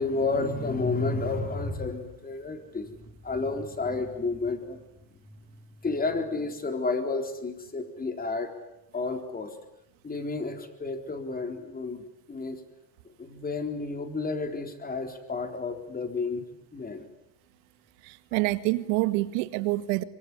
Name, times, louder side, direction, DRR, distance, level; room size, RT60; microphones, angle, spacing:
voice 1, 0.0-2.9 3.2-4.8 5.8-8.5 8.9-9.5 10.0-12.6 13.2-16.5 16.7-17.1, left 3 dB, 15° left, 6 dB, 4.0 m, -31 dB
voice 2, 18.0-20.0, right 19 dB, 75° right, 13 dB, 1.9 m, -27 dB
25.0 x 24.0 x 9.8 m, 0.86 s
supercardioid pair, 120°, 50 cm